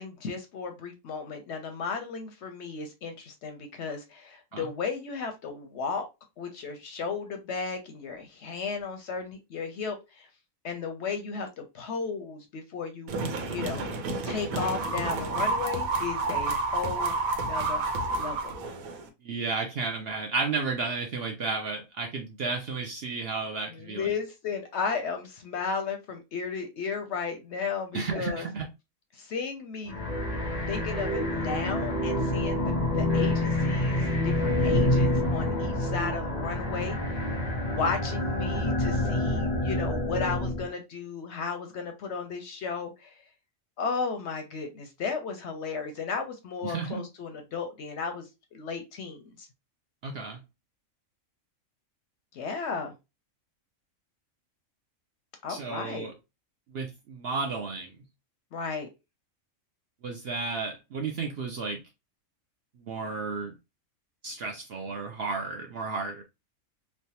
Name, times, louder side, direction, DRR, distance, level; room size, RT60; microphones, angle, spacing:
voice 1, 0.0-6.1 6.4-10.3 10.6-13.1 13.5-13.9 14.2-18.5 23.7-28.5 29.1-30.1 30.7-37.0 37.6-43.2 43.8-49.5 52.3-52.9 55.4-56.1 58.5-58.9, left 5 dB, 65° left, 0.7 m, -34 dB
sound 1, 13.1-19.1, right 3 dB, 85° right, 1.1 m, -30 dB
voice 2, 19.2-24.1 27.9-28.7 46.6-47.0 50.0-50.4 55.5-56.1 56.7-57.9 60.0-61.8 62.8-63.5 64.2-66.2, right 4 dB, 65° right, 0.6 m, -32 dB
sound 2, 29.9-40.7, left 1 dB, 90° left, 0.3 m, -27 dB
3.2 x 2.0 x 2.7 m
omnidirectional pair, 1.4 m